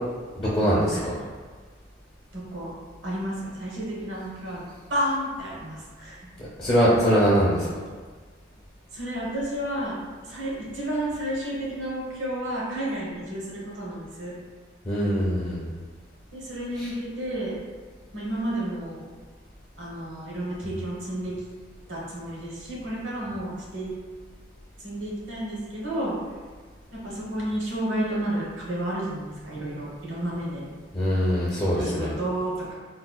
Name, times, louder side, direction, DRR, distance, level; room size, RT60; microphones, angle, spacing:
voice 1, 0.4-1.1 6.6-7.7 14.9-15.7 16.8-16.9 30.9-32.1, equal, 25° left, -9 dB, 0.4 m, -22 dB
voice 2, 2.3-2.7 3.0-4.6 4.9-6.2 8.9-14.3 16.3-17.6 18.1-19.0 19.8-21.3 21.9-23.9 24.8-26.1 26.9-30.6 31.7-32.7, right 1 dB, 80° right, -5 dB, 0.9 m, -31 dB
3.9 x 2.2 x 2.2 m, 1.5 s
head